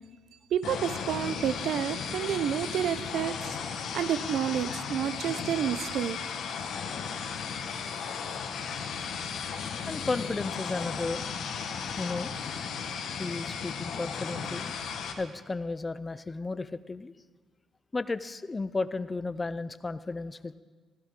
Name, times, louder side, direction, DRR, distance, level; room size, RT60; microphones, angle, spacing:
voice 1, 0.5-3.5 3.9-6.2, right 9 dB, 75° right, 14 dB, 0.6 m, -29 dB
sound 1, 0.6-15.1, left 6 dB, 75° left, 1.5 m, -35 dB
voice 2, 9.9-11.3 12.0-12.3 13.2-14.6 15.2-17.1 17.9-20.6, left 3 dB, 25° left, 14 dB, 0.5 m, -33 dB
16.0 x 15.5 x 3.7 m, 1.4 s
cardioid pair, 90°, 0 cm